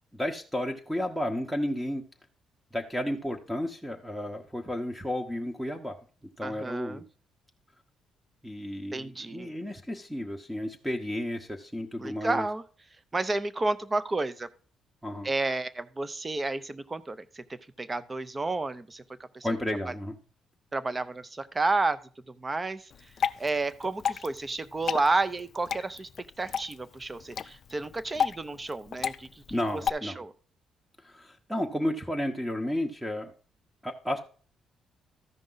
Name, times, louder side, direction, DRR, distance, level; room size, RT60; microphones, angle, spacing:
voice 1, 0.1-2.0 2.7-6.0 6.4-7.0 8.4-12.5 15.0-15.3 19.4-20.2 29.5-30.2 31.0-33.3 33.8-34.2, left 1 dB, 5° right, 2 dB, 0.9 m, -32 dB
voice 2, 6.4-7.0 8.9-9.5 12.0-12.6 13.1-14.5 15.2-19.0 19.3-19.5 20.7-22.0 22.4-23.1 23.4-30.3, right 3 dB, 25° right, 16 dB, 0.6 m, -31 dB
Water / Drip, 22.9-29.9, left 7 dB, 55° left, 0.3 m, -33 dB
13.5 x 5.2 x 3.9 m, 0.41 s
cardioid pair, 80°, 0 cm